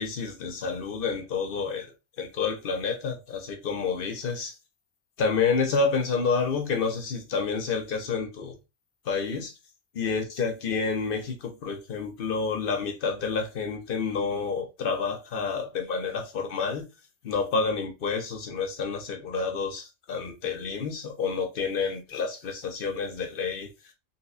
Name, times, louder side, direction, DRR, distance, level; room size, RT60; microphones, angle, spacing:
voice 1, 0.0-1.9 2.2-4.5 5.2-8.5 9.1-9.5 9.9-16.8 17.2-23.7, left 5 dB, 55° left, 0.9 m, -29 dB
4.0 x 2.2 x 2.5 m
omnidirectional pair, 1.2 m